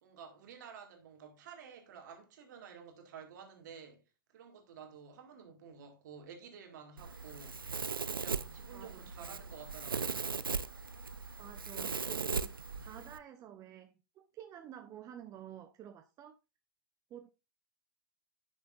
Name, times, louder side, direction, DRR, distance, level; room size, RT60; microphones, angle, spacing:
voice 1, 0.0-4.0 4.3-7.6 8.1-10.4, right 6 dB, 60° right, 2.0 m, -52 dB
Domestic sounds home sounds, 7.0-13.2, right 5 dB, 85° right, 0.5 m, -38 dB
voice 2, 8.7-9.4 11.4-16.4 17.1-17.3, right 10 dB, 30° right, 0.7 m, -51 dB
10.0 x 6.3 x 2.5 m
figure-of-eight pair, 100°, 11 cm